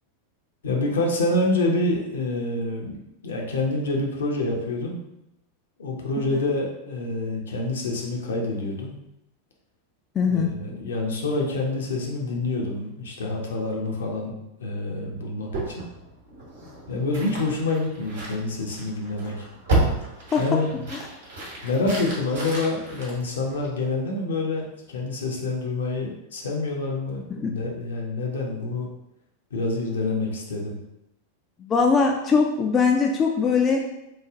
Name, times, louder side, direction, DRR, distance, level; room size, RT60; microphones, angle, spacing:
voice 1, 0.6-5.0 5.8-9.0 10.3-14.3 14.6-15.7 16.9-19.5 20.4-20.9 21.6-28.9 29.5-30.8, left 2 dB, 65° left, 0 dB, 0.7 m, -27 dB
voice 2, 10.2-10.5 20.3-20.4 20.9-21.0 27.3-27.5 31.6-33.9, left 5 dB, 25° left, 1 dB, 0.3 m, -21 dB
sound 1, 15.5-24.0, right 2 dB, 60° right, 1.0 m, -31 dB
3.2 x 2.3 x 3.5 m, 0.87 s
figure-of-eight pair, 90°, 0 cm